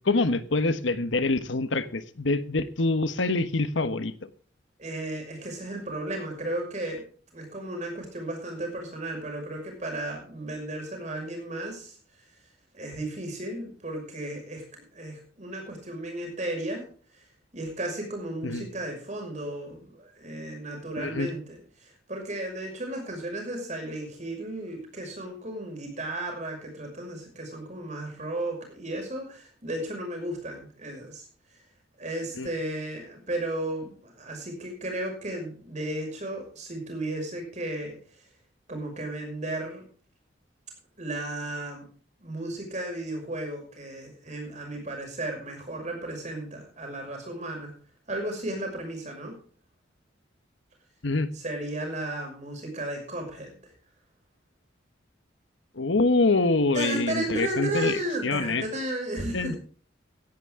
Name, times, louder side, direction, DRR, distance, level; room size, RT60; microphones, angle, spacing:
voice 1, 0.0-4.3 18.4-18.6 21.0-21.3 32.4-32.5 51.0-51.3 55.8-58.6 59.3-59.6, left 3 dB, 75° left, 12 dB, 1.1 m, -25 dB
voice 2, 4.8-7.0 7.3-12.0 12.7-16.8 17.5-31.2 31.5-31.6 32.0-38.0 38.7-39.8 41.0-41.9 42.2-47.7 48.1-49.3 51.3-53.5 56.7-59.6, right 1 dB, 35° right, 2 dB, 5.9 m, -34 dB
16.5 x 11.5 x 3.7 m, 0.42 s
head